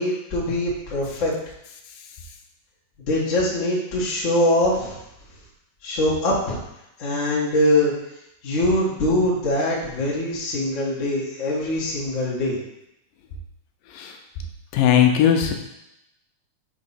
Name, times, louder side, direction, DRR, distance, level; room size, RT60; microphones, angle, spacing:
voice 1, 0.0-1.3 3.1-5.0 5.8-6.6 7.0-7.9 8.4-12.6, left 1 dB, 45° left, -5 dB, 0.9 m, -22 dB
voice 2, 14.7-15.5, left 9 dB, 90° left, 4 dB, 2.3 m, -18 dB
5.8 x 3.0 x 5.6 m, 0.84 s
omnidirectional pair, 3.7 m